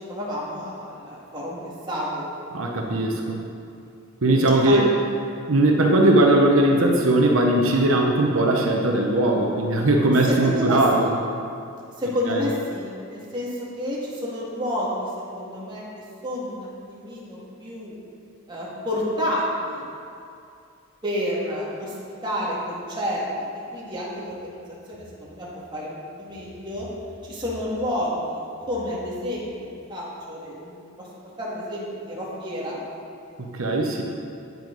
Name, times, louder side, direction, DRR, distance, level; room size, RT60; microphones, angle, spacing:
voice 1, 0.1-2.3 4.6-4.8 10.3-11.2 12.0-15.1 15.3-15.8 16.2-17.9 18.5-19.9 21.0-22.0 22.2-23.2 23.7-24.6 24.9-25.5 25.7-26.9 27.2-29.5 29.9-30.8 31.4-32.8, equal, 20° right, -6 dB, 2.1 m, -29 dB
voice 2, 2.5-3.4 4.2-4.9 5.5-11.1 12.3-12.4 33.4-34.0, right 1 dB, 80° right, 1 dB, 0.9 m, -19 dB
9.4 x 9.4 x 4.0 m, 2.5 s
head